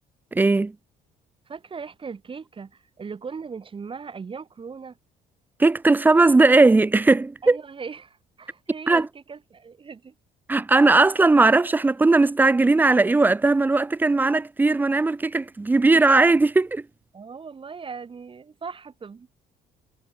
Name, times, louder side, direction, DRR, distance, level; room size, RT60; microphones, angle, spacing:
voice 1, 0.3-0.8 5.6-7.6 8.9-9.1 10.5-16.9, right 3 dB, 10° right, 0.4 m, -18 dB
voice 2, 1.5-5.0 7.4-10.1 17.1-19.3, right 5 dB, 30° right, 4.5 m, -38 dB
cardioid pair, 110°, 17 cm